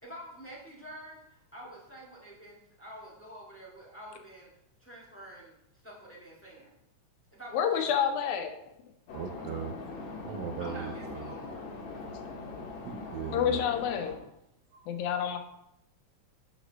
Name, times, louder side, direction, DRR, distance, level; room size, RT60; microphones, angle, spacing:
voice 1, 0.0-4.5 4.8-5.5 5.8-6.7 7.3-8.1 10.6-11.7, right 1 dB, 10° left, -6 dB, 0.9 m, -48 dB
voice 2, 7.5-8.6 13.3-14.1 14.9-15.4, left 8 dB, 85° left, 6 dB, 2.2 m, -28 dB
sound 1, 9.1-14.2, left 3 dB, 70° left, 2.3 m, -41 dB
voice 3, 9.1-9.7 10.2-11.3 12.8-13.6 14.7-14.9, right 7 dB, 80° right, 4 dB, 1.8 m, -38 dB
6.3 x 4.1 x 6.2 m, 0.80 s
omnidirectional pair, 3.3 m